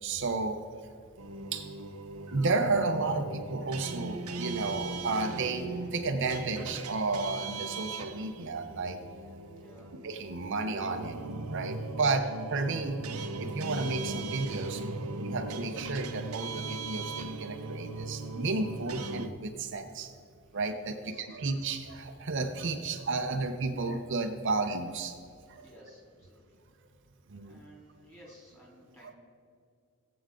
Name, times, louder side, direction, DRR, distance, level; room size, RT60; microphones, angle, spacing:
voice 1, 0.0-0.6 1.5-1.7 2.3-9.0 10.0-12.2 12.5-13.0 13.4-14.8 15.2-20.1 20.5-25.2 25.5-25.7 27.3-27.6 29.0-29.1, right 3 dB, 55° right, 5 dB, 0.7 m, -32 dB
sound 1, 1.2-19.3, right 2 dB, 90° right, 0.9 m, -39 dB
voice 2, 9.6-9.9 20.4-20.6 20.9-21.4 25.6-26.4 27.4-29.2, equal, 10° left, -4 dB, 3.3 m, -55 dB
18.5 x 7.9 x 3.7 m, 2.4 s
head